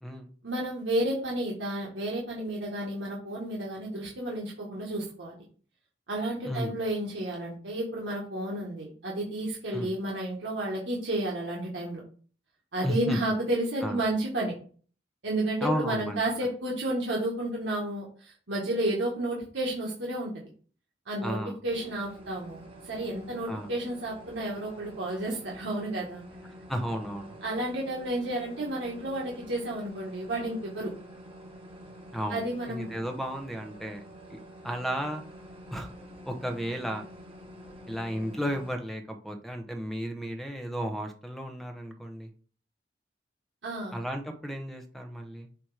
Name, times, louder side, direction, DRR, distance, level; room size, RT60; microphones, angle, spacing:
voice 1, 0.4-5.3 6.1-12.0 12.7-14.5 15.2-20.3 21.1-21.4 21.6-26.2 27.4-30.9 32.3-32.9 43.6-44.0, right 1 dB, 85° right, -3 dB, 1.5 m, -31 dB
voice 2, 6.4-6.8 9.7-9.9 12.8-13.2 13.8-14.0 15.6-16.2 21.2-21.5 23.5-23.7 26.7-27.4 32.1-34.0 34.3-34.4 34.6-35.2 35.7-35.9 36.2-37.0 37.9-42.3 43.9-45.5, equal, ahead, 5 dB, 0.9 m, -33 dB
sound 1, 21.7-38.7, equal, 30° right, 1.8 m, -48 dB
7.6 x 3.0 x 4.9 m, 0.43 s
head